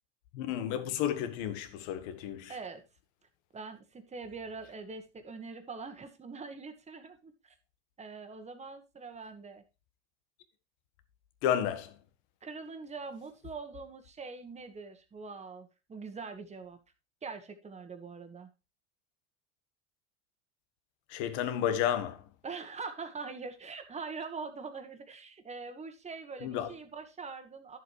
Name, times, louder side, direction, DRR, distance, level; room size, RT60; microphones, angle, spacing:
voice 1, 0.3-2.6 11.4-11.9 21.1-22.3 26.4-26.7, left 10 dB, 65° left, 1.6 m, -32 dB
voice 2, 2.5-2.8 3.5-7.5 8.0-9.6 12.4-16.8 17.2-18.5 22.4-27.8, right 4 dB, 20° right, 1.6 m, -43 dB
11.0 x 7.4 x 3.2 m
supercardioid pair, 120°, 35 cm